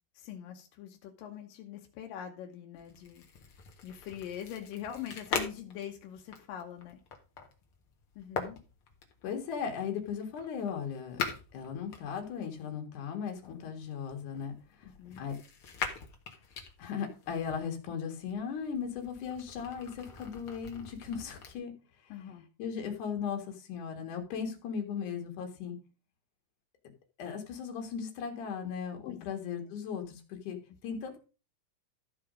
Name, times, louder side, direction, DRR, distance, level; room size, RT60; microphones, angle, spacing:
voice 1, 0.1-3.5 3.8-7.0 8.2-8.6 14.8-15.2 22.1-22.5 29.0-29.3, left 10 dB, 90° left, 3 dB, 2.7 m, -43 dB
sound 1, 2.7-12.7 13.4-17.6 18.2-21.5, left 5 dB, 50° left, 2.1 m, -42 dB
voice 2, 9.2-11.2 11.5-14.9 15.2-15.3 16.8-21.7 22.0-22.1 22.6-25.8 27.2-30.6 30.8-31.2, left 7 dB, 70° left, 3 dB, 3.2 m, -37 dB
13.5 x 4.9 x 5.0 m, 0.33 s
omnidirectional pair, 3.8 m